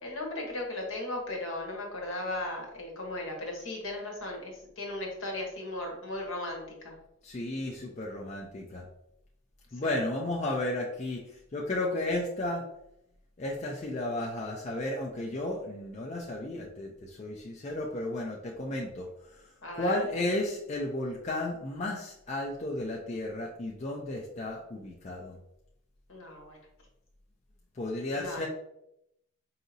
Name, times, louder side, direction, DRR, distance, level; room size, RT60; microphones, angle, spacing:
voice 1, 0.0-6.9 9.8-9.9 19.6-20.1 26.1-26.6 28.2-28.5, left 1 dB, 65° left, 0 dB, 1.1 m, -37 dB
voice 2, 7.2-8.8 9.7-11.2 11.5-12.6 13.4-19.4 19.8-25.4 27.8-28.5, left 1 dB, 30° left, -2 dB, 0.4 m, -33 dB
4.9 x 2.7 x 2.7 m, 0.80 s
head